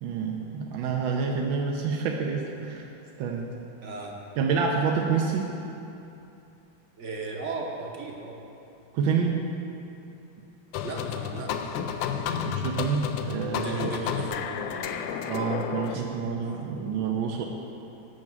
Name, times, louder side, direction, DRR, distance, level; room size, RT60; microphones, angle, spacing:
voice 1, 0.0-2.9 3.2-3.5 4.4-5.5 8.9-9.4 12.4-13.9 15.3-17.5, right 5 dB, 75° right, 0 dB, 1.4 m, -28 dB
voice 2, 3.8-4.1 7.0-8.4 10.8-12.5 13.5-16.7, right 3 dB, 45° right, 0 dB, 1.0 m, -38 dB
sound 1, 10.7-16.0, left 8 dB, 75° left, 1.1 m, -31 dB
9.6 x 5.9 x 7.5 m, 2.8 s
omnidirectional pair, 2.3 m